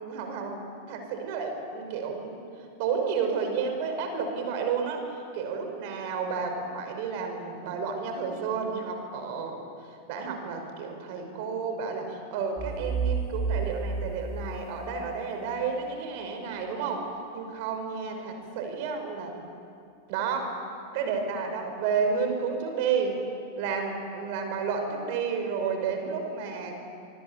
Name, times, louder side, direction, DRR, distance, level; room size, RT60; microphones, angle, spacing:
voice 1, 0.0-2.4 2.8-9.6 10.1-19.3 20.1-20.6 20.9-23.2 23.6-26.8, right 5 dB, 50° right, 5 dB, 5.5 m, -31 dB
sound 1, 12.6-15.4, right 4 dB, 15° right, 1.6 m, -31 dB
26.5 x 24.5 x 8.4 m, 2.4 s
figure-of-eight pair, 90°, 0 cm